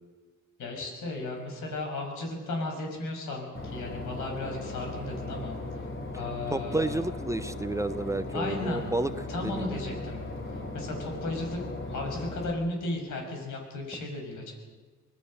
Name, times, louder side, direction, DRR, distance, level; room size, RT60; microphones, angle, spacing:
voice 1, 0.6-5.6 6.1-7.1 8.3-8.9 9.3-10.3 10.7-11.6 11.9-14.5, left 2 dB, 80° left, 2 dB, 6.4 m, -35 dB
Boat Water vehicle / Engine, 3.5-12.5, left 2 dB, 45° left, 3.9 m, -38 dB
voice 2, 6.5-9.1 9.4-9.8, right 2 dB, 10° right, 11 dB, 0.8 m, -31 dB
25.0 x 19.0 x 6.6 m, 1.4 s
cardioid pair, 90°, 30 cm